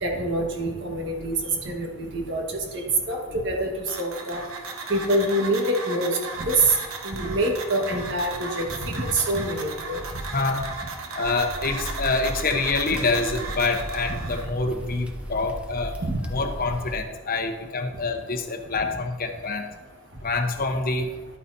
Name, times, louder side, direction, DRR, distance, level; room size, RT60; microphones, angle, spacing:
voice 1, 0.0-1.4 1.6-3.7 4.0-4.4 4.9-6.8 7.0-10.0 14.1-14.2 16.0-16.2, right 1 dB, 55° right, 2 dB, 1.5 m, -25 dB
sound 1, 3.9-14.5, right 3 dB, 70° right, 1.0 m, -36 dB
voice 2, 10.3-10.7 11.2-16.0 16.3-19.7 20.2-21.1, left 3 dB, 40° left, 5 dB, 0.9 m, -26 dB
sound 2, 11.2-17.0, equal, 5° right, 0.6 m, -37 dB
11.0 x 8.9 x 2.7 m, 1.3 s
head